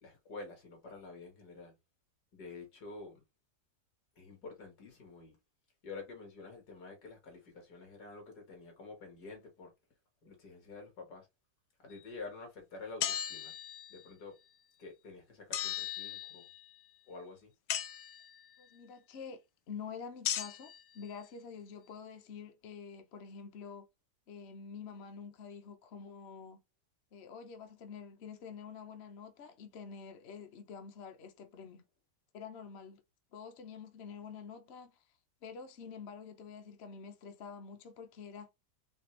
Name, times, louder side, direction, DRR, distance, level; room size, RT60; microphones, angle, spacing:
voice 1, 0.0-1.7 2.3-3.2 4.2-5.4 5.8-9.7 10.2-11.3 11.8-13.5 13.9-14.3 14.8-16.5 17.1-17.5, left 3 dB, 70° left, 2.2 m, -48 dB
sound 1, 13.0-14.0 15.5-16.6 17.7-18.4 20.2-20.8, left 11 dB, 90° left, 1.2 m, -37 dB
voice 2, 18.6-23.9 24.3-26.6 27.1-31.8 32.3-33.0 33.3-35.0 35.4-38.5, left 6 dB, 55° left, 0.8 m, -47 dB
4.2 x 3.4 x 3.1 m
omnidirectional pair, 1.8 m